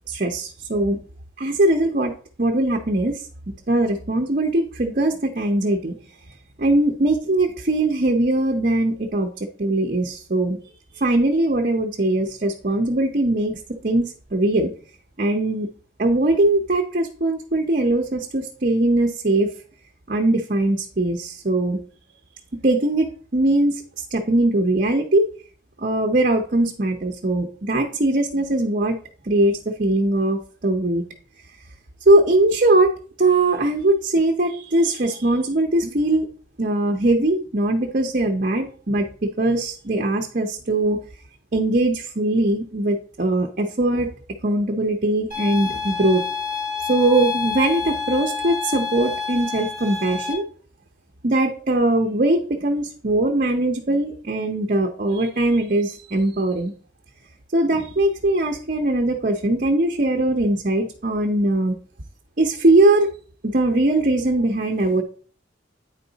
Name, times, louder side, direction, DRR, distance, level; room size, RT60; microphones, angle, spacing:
voice 1, 0.1-1.0 1.4-2.1 2.4-3.2 3.7-5.9 6.6-9.3 9.6-10.6 10.9-14.7 15.2-15.7 16.0-19.5 20.1-21.8 22.6-25.3 25.8-29.0 29.2-31.0 32.1-32.9 33.2-36.3 36.6-41.0 41.5-44.1 44.4-46.2 46.9-50.4 51.2-56.7 57.5-61.7 62.4-63.1 63.4-65.0, right 2 dB, 45° right, 2 dB, 0.8 m, -21 dB
sound 1, 45.3-50.3, left 5 dB, 45° left, 3.9 m, -28 dB
9.0 x 4.8 x 4.0 m, 0.42 s
head